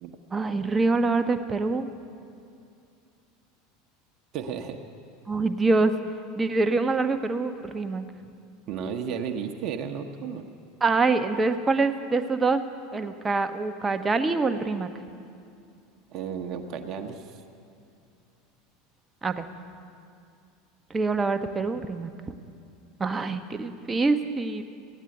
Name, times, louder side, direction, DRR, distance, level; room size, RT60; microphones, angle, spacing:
voice 1, 0.3-1.9 5.3-5.9 6.4-8.0 10.8-12.6 12.9-14.9 19.2-19.5 20.9-22.1 23.0-24.6, right 3 dB, 20° right, 8 dB, 0.8 m, -25 dB
voice 2, 4.3-4.8 8.7-10.4 16.1-17.4, right 7 dB, 45° right, 5 dB, 1.0 m, -33 dB
15.5 x 9.2 x 7.9 m, 2.4 s
figure-of-eight pair, 75°, 0 cm